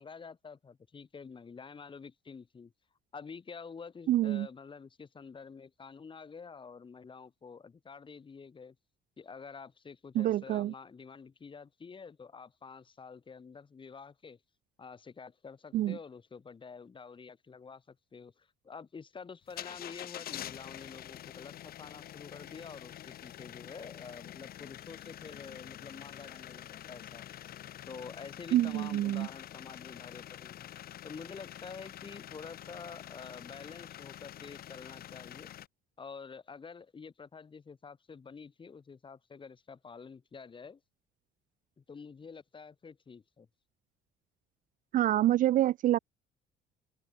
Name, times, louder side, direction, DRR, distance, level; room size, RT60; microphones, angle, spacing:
voice 1, 0.0-2.7 3.1-8.8 9.2-14.4 14.8-27.3 27.9-30.7 31.0-35.5 36.0-40.8 41.8-43.5, left 5 dB, 30° left, 3.7 m, -48 dB
voice 2, 4.1-4.5 10.1-10.7 15.7-16.0 28.5-29.3 44.9-46.0, right 13 dB, 50° right, 0.4 m, -27 dB
sound 1, 19.5-35.7, left 12 dB, 65° left, 6.8 m, -47 dB
open air
cardioid pair, 110°, 17 cm